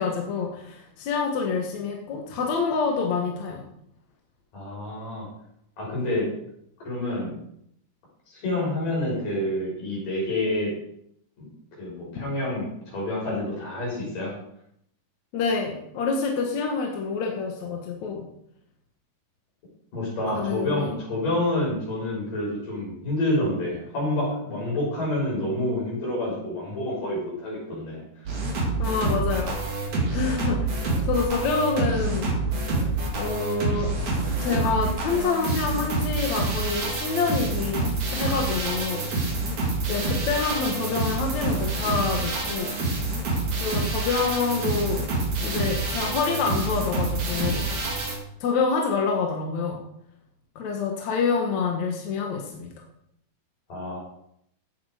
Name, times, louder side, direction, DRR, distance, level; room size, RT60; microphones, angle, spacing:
voice 1, 0.0-3.6 15.3-18.3 20.3-20.9 28.8-29.6 30.1-32.3 33.2-34.0 34.4-39.1 39.9-42.8 43.6-45.0 45.4-47.7 48.4-49.8 50.6-52.7, left 5 dB, 60° left, 1 dB, 2.6 m, -27 dB
voice 2, 4.5-5.3 5.8-6.3 6.8-7.3 8.3-10.7 11.4-14.3 19.9-28.0 53.7-54.0, left 1 dB, 75° left, -5 dB, 8.3 m, -28 dB
sound 1, 28.3-48.2, right 2 dB, 60° right, 4.2 m, -27 dB
16.5 x 8.6 x 5.0 m, 0.73 s
omnidirectional pair, 3.8 m